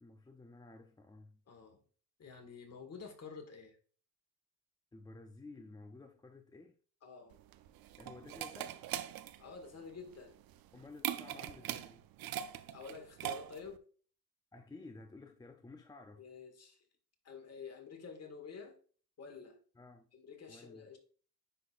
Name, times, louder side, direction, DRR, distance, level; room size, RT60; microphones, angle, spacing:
voice 1, 0.0-1.4 4.9-6.8 8.0-8.8 10.7-12.1 14.5-16.3 19.8-20.1 20.5-20.9, left 3 dB, 10° left, 0.4 m, -53 dB
voice 2, 1.5-1.8 2.2-3.8 7.0-7.4 9.4-10.3 12.7-13.8 16.2-16.8 17.2-18.8 19.2-19.6 20.1-21.0, left 5 dB, 40° left, 1.7 m, -49 dB
sound 1, 7.3-13.8, right 11 dB, 70° right, 0.5 m, -42 dB
9.9 x 4.2 x 2.4 m
cardioid pair, 120°, 37 cm